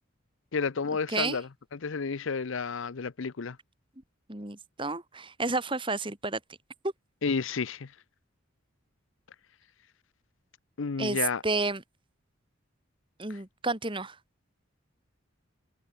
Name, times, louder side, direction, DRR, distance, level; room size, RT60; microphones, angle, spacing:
voice 1, 0.5-3.6 7.2-7.9 10.8-11.4, left 5 dB, 65° left, 0.6 m, -31 dB
voice 2, 1.1-1.4 4.3-6.4 11.0-11.8 13.2-14.2, right 3 dB, 25° right, 2.1 m, -31 dB
head